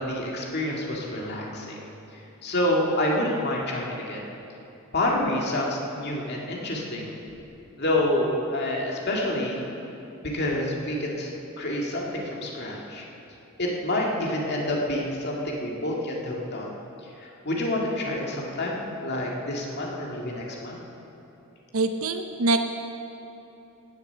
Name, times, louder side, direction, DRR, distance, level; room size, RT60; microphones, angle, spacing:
voice 1, 0.0-1.8 2.4-4.2 4.9-7.1 7.8-9.6 10.2-11.3 11.6-13.0 13.6-16.7 17.2-20.8, left 1 dB, 50° left, -2 dB, 2.1 m, -28 dB
voice 2, 21.7-22.6, right 3 dB, 80° right, 6 dB, 0.7 m, -24 dB
17.5 x 8.2 x 6.8 m, 2.9 s
head